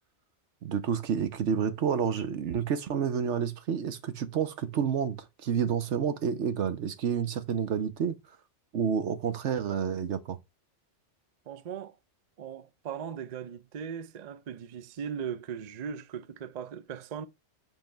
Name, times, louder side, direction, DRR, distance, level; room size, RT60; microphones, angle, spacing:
voice 1, 0.6-5.2 5.4-8.2 8.7-10.4, right 7 dB, 75° right, 1.1 m, -29 dB
voice 2, 11.5-12.0 12.4-17.3, right 7 dB, 50° right, 0.6 m, -38 dB
7.5 x 3.7 x 4.4 m
omnidirectional pair, 1.2 m